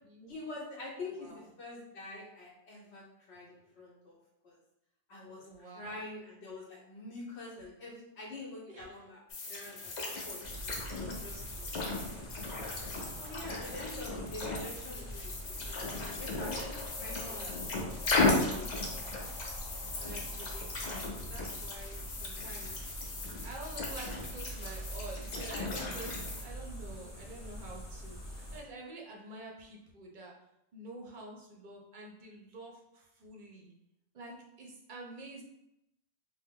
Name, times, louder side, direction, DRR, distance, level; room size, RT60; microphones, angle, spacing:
voice 1, 0.2-4.2 4.4-4.6 5.1-9.2 9.5-12.0 13.1-16.7 17.0-17.5 18.1-18.2 18.5-18.7 21.2-21.3, left 2 dB, 70° left, -3 dB, 0.9 m, -46 dB
voice 2, 1.1-1.5 5.2-6.0 8.7-9.0 12.8-13.5 16.5-17.6 20.0-22.7 23.4-30.3 30.7-33.7 34.1-35.4, right 2 dB, 55° right, -1 dB, 0.6 m, -48 dB
sound 1, 9.3-26.4, left 3 dB, 50° left, 0.5 m, -36 dB
sound 2, 10.4-28.6, right 1 dB, 30° left, 0.8 m, -45 dB
sound 3, 16.4-22.2, left 2 dB, 5° left, 0.4 m, -53 dB
2.8 x 2.0 x 3.5 m, 0.83 s
omnidirectional pair, 1.2 m